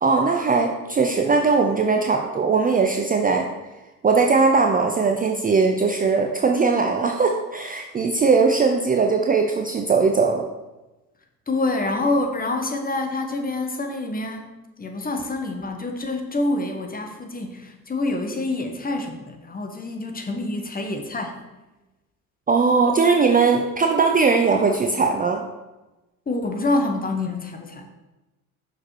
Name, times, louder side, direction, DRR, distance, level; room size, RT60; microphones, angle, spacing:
voice 1, 0.0-3.5 4.0-10.4 22.5-25.4, right 4 dB, 20° right, 3 dB, 0.6 m, -19 dB
voice 2, 11.5-14.5 14.8-21.4 26.3-27.8, left 2 dB, 20° left, 4 dB, 1.2 m, -26 dB
6.0 x 5.4 x 4.5 m, 1.1 s
hypercardioid pair, 60°, 44 cm